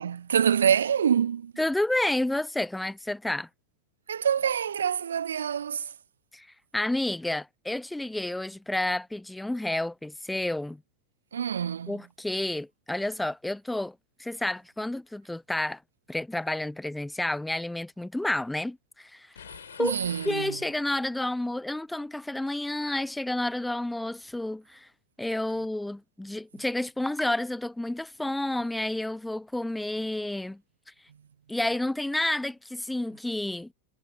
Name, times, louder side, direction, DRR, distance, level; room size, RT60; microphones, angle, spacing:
voice 1, 0.0-1.5 4.1-5.9 11.3-12.0 19.8-20.6, right 8 dB, 65° right, 0.5 m, -26 dB
voice 2, 1.6-3.5 6.3-6.5 6.7-10.8 11.9-15.8 16.1-19.3 19.8-20.0 20.2-24.9 25.2-30.6 31.5-33.7, left 1 dB, 5° left, 0.9 m, -30 dB
sound 1, 19.4-21.2, left 8 dB, 65° left, 6.9 m, -46 dB
figure-of-eight pair, 90°, 0 cm